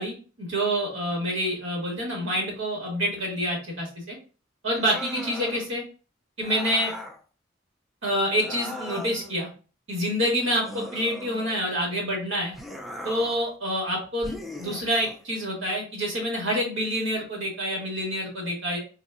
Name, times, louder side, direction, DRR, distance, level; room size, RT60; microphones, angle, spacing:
voice 1, 0.0-4.2 4.6-5.8 6.4-6.9 8.0-9.5 9.9-12.5 13.0-18.8, equal, 85° right, -2 dB, 1.7 m, -27 dB
sound 1, 4.8-5.7 6.4-7.2 8.3-9.4 10.6-11.8 12.5-13.5 14.2-15.2, left 1 dB, ahead, 0.3 m, -39 dB
3.9 x 2.6 x 2.4 m, 0.35 s
head